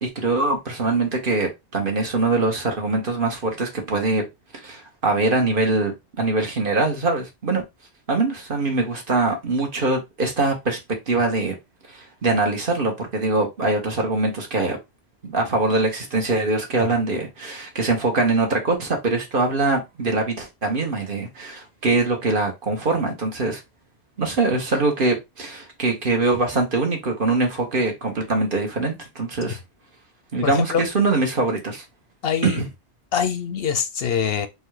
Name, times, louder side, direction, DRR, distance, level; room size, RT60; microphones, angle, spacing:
voice 1, 0.0-4.2 4.6-7.6 8.1-10.8 11.1-11.5 11.9-14.8 15.2-23.6 24.2-29.6 30.3-31.8 32.4-32.7, right 3 dB, 50° right, 1.4 m, -23 dB
voice 2, 30.4-30.8 32.2-32.6 33.1-34.5, left 7 dB, 65° left, 0.7 m, -24 dB
3.9 x 2.4 x 4.7 m
omnidirectional pair, 1.2 m